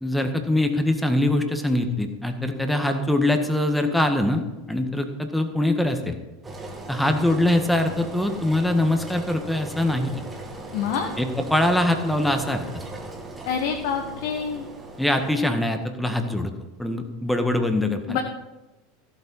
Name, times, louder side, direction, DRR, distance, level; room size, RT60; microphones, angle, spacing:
voice 1, 0.0-6.2 6.9-10.2 11.2-12.8 15.0-16.5 16.8-18.2, left 1 dB, ahead, 6 dB, 1.6 m, -23 dB
Engine, 6.4-15.4, right 2 dB, 15° right, 2.4 m, -38 dB
voice 2, 10.7-11.1 13.4-14.7 18.1-18.2, left 7 dB, 55° left, 3 dB, 1.3 m, -26 dB
15.0 x 8.1 x 5.4 m, 1.0 s
figure-of-eight pair, 80°, 0 cm